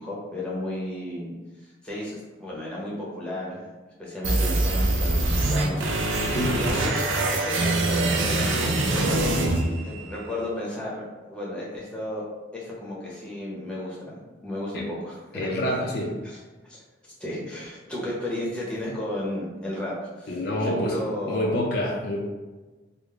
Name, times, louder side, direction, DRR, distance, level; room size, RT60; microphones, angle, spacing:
voice 1, 0.0-9.5 9.8-12.2 12.5-15.9 16.2-16.4 16.7-21.6, left 1 dB, 5° left, -6 dB, 0.7 m, -34 dB
sound 1, 4.2-10.3, right 2 dB, 90° right, 0.5 m, -24 dB
voice 2, 15.3-16.1 20.3-22.2, left 1 dB, 55° left, -1 dB, 0.4 m, -27 dB
3.6 x 2.0 x 3.5 m, 1.2 s
head